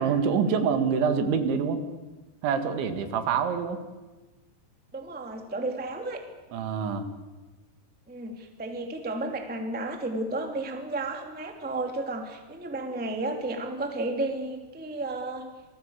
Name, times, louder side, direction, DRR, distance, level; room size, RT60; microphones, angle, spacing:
voice 1, 0.0-1.8 2.4-3.8 6.5-7.1, right 6 dB, 75° right, 9 dB, 4.1 m, -26 dB
voice 2, 4.9-6.2 8.1-15.5, right 2 dB, 5° right, 4 dB, 1.3 m, -32 dB
27.0 x 20.0 x 8.3 m, 1.2 s
omnidirectional pair, 5.5 m